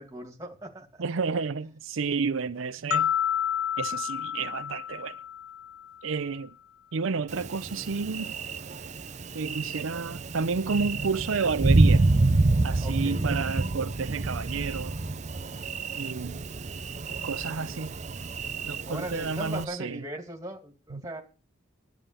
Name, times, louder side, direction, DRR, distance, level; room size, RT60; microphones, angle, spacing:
voice 1, 0.0-1.0 12.8-13.3 17.4-17.8 18.9-21.2, right 1 dB, 15° right, 2.4 m, -39 dB
voice 2, 1.0-3.1 3.8-5.2 6.0-6.5 6.9-8.3 9.3-12.0 12.6-15.0 16.0-16.4 17.2-17.9 18.7-20.0 20.9-21.2, right 5 dB, 85° right, 0.6 m, -31 dB
sound 1, 2.9-6.0, left 9 dB, 80° left, 0.5 m, -30 dB
Thunder, 7.3-19.6, right 2 dB, 35° right, 0.6 m, -28 dB
11.0 x 9.3 x 6.9 m
head